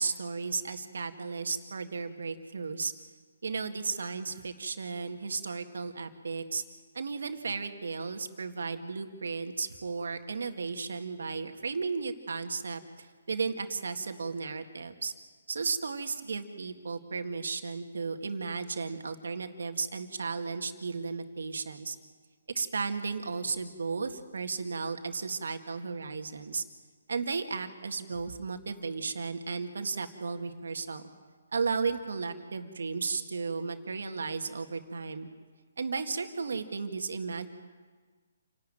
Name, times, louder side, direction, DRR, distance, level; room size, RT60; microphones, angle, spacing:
voice 1, 0.0-2.9 3.4-6.6 6.9-15.1 15.5-22.0 22.6-26.6 27.1-31.0 31.5-35.3 35.8-37.5, right 4 dB, 75° right, 6 dB, 2.0 m, -34 dB
28.0 x 12.5 x 9.2 m, 1.5 s
hypercardioid pair, 155°, 0 cm